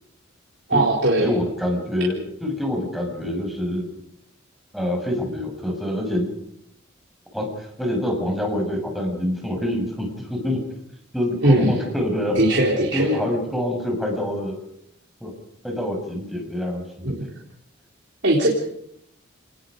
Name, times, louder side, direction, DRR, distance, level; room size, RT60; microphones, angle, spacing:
voice 1, 0.7-1.3 11.4-11.8 12.3-13.1 17.0-17.3 18.2-18.5, right 1 dB, 60° right, -2 dB, 3.7 m, -19 dB
voice 2, 1.2-3.8 4.7-6.3 7.3-10.6 11.1-12.4 12.9-14.6 15.2-15.3 15.6-17.1, left 1 dB, ahead, 1 dB, 6.3 m, -26 dB
29.0 x 20.0 x 5.2 m, 0.73 s
head